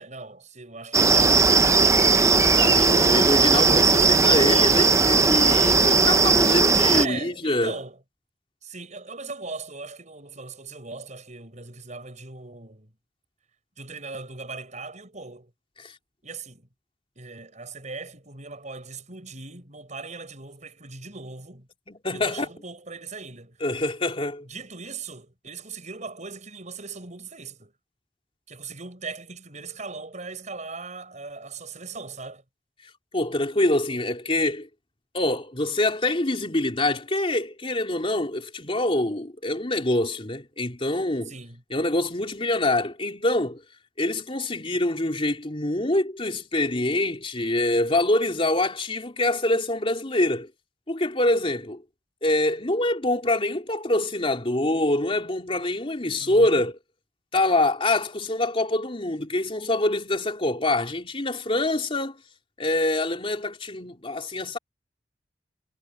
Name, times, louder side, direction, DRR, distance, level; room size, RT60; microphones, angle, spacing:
voice 1, 0.0-2.3 6.9-8.0 8.6-12.9 13.8-15.5 16.2-16.7 17.2-21.7 22.1-23.6 24.4-27.7 28.5-32.4 41.3-41.6 56.2-56.6, right 4 dB, 45° right, 6.2 m, -39 dB
sound 1, 0.9-7.1, right 4 dB, 15° right, 0.5 m, -18 dB
voice 2, 2.5-7.7 15.8-15.9 21.9-22.4 23.6-24.4 33.1-34.7 35.1-41.3 41.7-43.6 44.0-50.5 50.9-51.8 52.2-56.8 57.3-62.2 62.6-64.6, left 1 dB, 35° left, 3.5 m, -25 dB
head